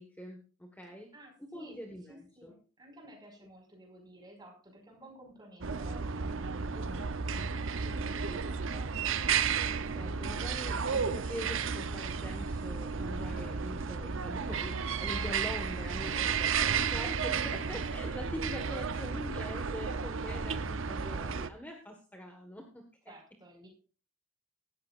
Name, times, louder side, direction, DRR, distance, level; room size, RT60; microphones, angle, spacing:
voice 1, 0.0-1.1 1.4-2.5 6.7-7.5 7.8-8.5 9.8-23.1, equal, 10° left, 2 dB, 1.5 m, -44 dB
voice 2, 1.1-6.4 7.8-9.2 18.7-18.9 23.1-23.7, right 1 dB, 20° right, 2 dB, 5.2 m, -54 dB
sound 1, 5.6-21.5, right 6 dB, 70° right, 0.7 m, -33 dB
17.0 x 14.0 x 2.5 m, 0.38 s
head